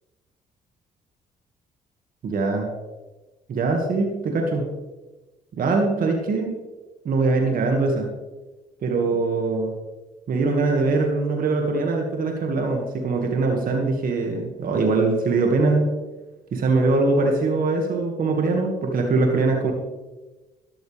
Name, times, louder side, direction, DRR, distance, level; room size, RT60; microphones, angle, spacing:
voice 1, 2.2-2.7 3.5-4.7 5.6-6.5 7.0-8.1 8.8-9.7 10.3-15.9 16.5-19.7, right 3 dB, 60° right, 2 dB, 2.1 m, -22 dB
12.5 x 12.0 x 3.5 m, 1.2 s
supercardioid pair, 65°, 16 cm